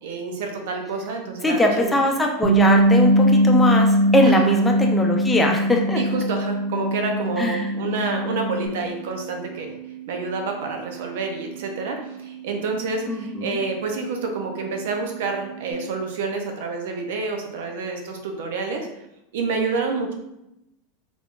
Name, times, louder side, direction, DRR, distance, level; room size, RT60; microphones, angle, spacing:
voice 1, 0.0-1.9 4.2-4.6 5.9-9.8 10.1-18.9 19.3-20.1, right 4 dB, 75° right, 3 dB, 0.6 m, -28 dB
voice 2, 1.4-6.0 7.4-7.7 13.1-13.6, left 1 dB, 15° left, 1 dB, 0.6 m, -21 dB
sound 1, 1.8-15.7, right 11 dB, 80° left, 0.7 m, -40 dB
Bass guitar, 2.4-8.7, equal, 35° right, 0.9 m, -20 dB
3.4 x 3.4 x 2.5 m, 0.87 s
hypercardioid pair, 100°, 0 cm